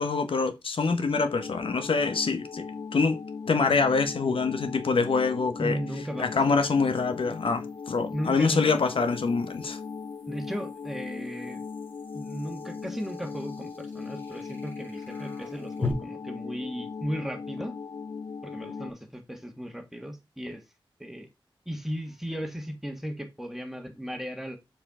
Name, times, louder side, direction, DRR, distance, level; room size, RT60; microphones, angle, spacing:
voice 1, 0.0-2.7 2.9-3.2 3.5-5.8 6.2-9.8, left 4 dB, 75° left, 0.9 m, -25 dB
sound 1, 1.1-18.9, left 5 dB, 55° left, 0.4 m, -39 dB
sound 2, 2.2-2.3 5.8-15.9, left 4 dB, 20° left, 3.5 m, -43 dB
voice 2, 5.6-6.6 8.1-8.8 10.3-11.6 12.1-17.7 18.4-20.6 21.0-21.3 21.6-24.6, equal, 5° right, 1.6 m, -36 dB
7.0 x 4.4 x 3.7 m
wide cardioid pair, 65°, 9 cm